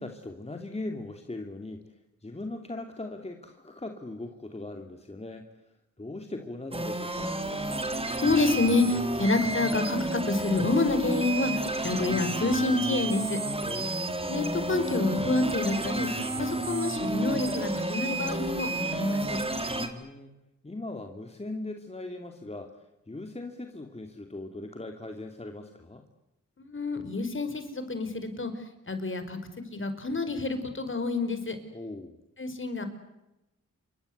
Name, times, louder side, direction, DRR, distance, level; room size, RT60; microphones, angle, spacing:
voice 1, 0.0-5.7 6.0-7.4 13.6-14.1 19.7-20.3 20.6-26.0 31.7-32.2, left 2 dB, 20° left, 4 dB, 2.8 m, -40 dB
sound 1, 6.7-19.9, right 1 dB, 20° right, 3.9 m, -31 dB
voice 2, 8.1-13.4 14.3-16.1 16.4-19.4 26.6-28.5 28.9-29.4 29.7-31.6 32.4-32.8, left 2 dB, 40° left, 9 dB, 5.2 m, -28 dB
28.5 x 24.5 x 8.2 m, 0.95 s
cardioid pair, 75°, 30 cm